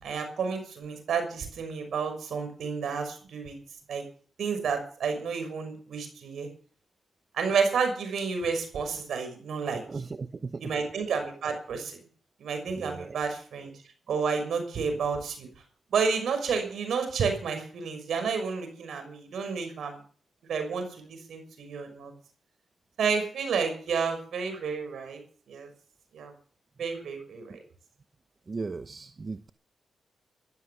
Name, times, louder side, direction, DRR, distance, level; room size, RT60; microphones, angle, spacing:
voice 1, 0.0-3.5 3.9-4.0 4.4-6.5 7.3-9.8 10.6-12.0 12.4-13.7 14.1-15.5 15.9-20.0 20.5-22.1 23.0-25.2 25.5-25.7 26.1-26.3 26.8-27.6, right 5 dB, 75° right, 6 dB, 6.0 m, -30 dB
voice 2, 9.9-10.6 12.8-13.2 28.5-29.5, right 4 dB, 45° right, 10 dB, 1.0 m, -36 dB
14.0 x 12.0 x 7.2 m, 0.43 s
supercardioid pair, 50°, 0 cm